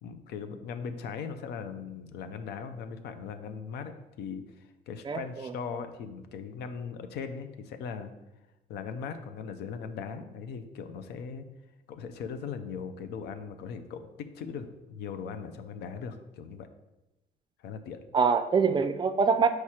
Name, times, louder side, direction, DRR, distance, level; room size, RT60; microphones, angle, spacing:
voice 1, 0.0-4.4 4.9-8.1 8.7-11.5 11.9-16.7 17.6-18.0, left 6 dB, 75° left, 9 dB, 0.6 m, -39 dB
voice 2, 5.1-5.5 18.1-19.5, right 5 dB, 25° right, 10 dB, 0.4 m, -24 dB
4.8 x 4.7 x 4.3 m, 0.97 s
cardioid pair, 110°, 17 cm